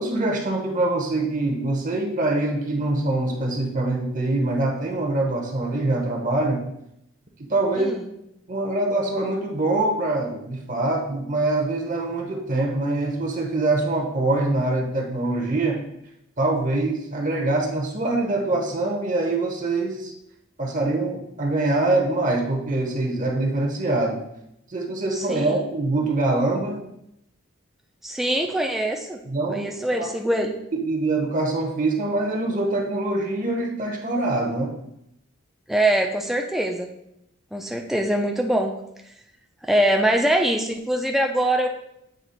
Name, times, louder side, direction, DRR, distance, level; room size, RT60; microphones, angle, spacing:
voice 1, 0.0-6.7 7.5-7.9 8.5-15.9 16.4-20.1 20.6-24.2 24.7-26.8 29.3-30.1 30.7-34.8, right 2 dB, 35° right, 1 dB, 0.7 m, -24 dB
voice 2, 25.1-25.6 28.0-29.2 29.5-30.5 35.7-36.9 37.5-38.7 39.6-41.7, right 1 dB, ahead, 2 dB, 0.4 m, -23 dB
7.7 x 2.9 x 4.2 m, 0.81 s
head